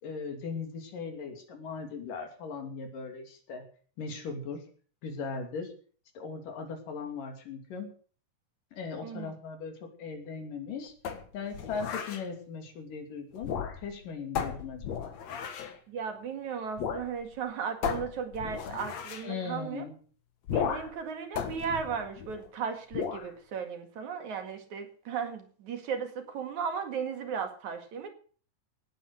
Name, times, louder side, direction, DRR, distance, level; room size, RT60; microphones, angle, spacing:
voice 1, 0.0-3.6 4.0-4.6 5.0-5.7 6.1-7.9 8.7-10.9 11.3-13.5 13.8-15.2 19.2-19.9, left 5 dB, 85° left, 5 dB, 4.4 m, -38 dB
voice 2, 9.0-9.3 15.9-19.8 20.5-28.1, right 6 dB, 65° right, 6 dB, 3.3 m, -36 dB
sound 1, 11.0-12.3 13.4-14.0 14.4-15.8 16.8-17.1 17.3-17.4 17.8-19.3 20.5-21.0 21.4-22.5 22.9-23.3, left 7 dB, 60° left, 2.7 m, -34 dB
18.0 x 8.9 x 6.4 m, 0.43 s
omnidirectional pair, 3.7 m